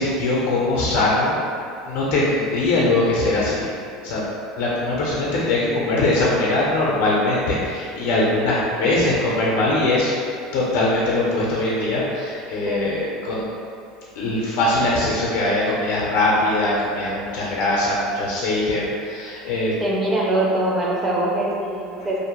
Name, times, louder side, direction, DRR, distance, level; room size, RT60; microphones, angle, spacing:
voice 1, 0.0-1.4 1.8-3.7 4.0-4.2 4.6-10.1 10.5-13.5 14.1-19.7 22.0-22.1, left 2 dB, 70° left, -5 dB, 0.5 m, -21 dB
voice 2, 19.8-22.2, right 1 dB, 15° right, -3 dB, 0.4 m, -23 dB
2.5 x 2.1 x 2.9 m, 2.4 s
supercardioid pair, 145°, 0 cm